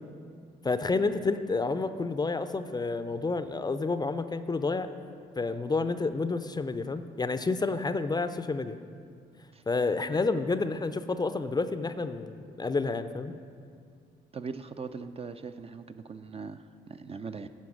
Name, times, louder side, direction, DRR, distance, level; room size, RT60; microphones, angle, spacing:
voice 1, 0.6-4.9 5.4-8.8 9.7-13.4, left 3 dB, 20° left, 11 dB, 0.5 m, -29 dB
voice 2, 14.3-17.5, right 5 dB, 30° right, 9 dB, 0.4 m, -40 dB
9.7 x 5.2 x 6.2 m, 2.3 s
hypercardioid pair, 50°, 19 cm